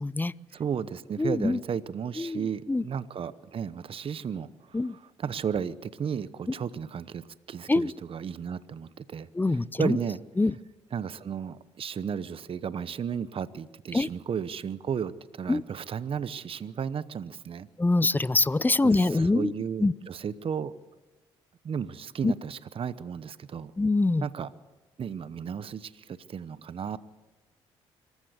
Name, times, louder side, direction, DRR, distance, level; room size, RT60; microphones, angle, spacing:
voice 1, 0.0-0.3 1.2-1.6 2.2-2.4 2.7-2.8 4.7-4.9 7.7-7.9 9.3-10.0 10.4-10.5 13.9-14.1 15.5-15.6 17.8-19.5 19.8-19.9 22.2-22.3 23.8-24.2, left 2 dB, 15° left, 21 dB, 0.6 m, -24 dB
voice 2, 0.5-10.2 10.9-17.7 18.8-20.7 21.6-23.7 24.2-24.5 25.0-27.0, right 7 dB, 50° right, 16 dB, 0.9 m, -34 dB
25.5 x 14.5 x 8.1 m, 1.2 s
supercardioid pair, 60°, 12 cm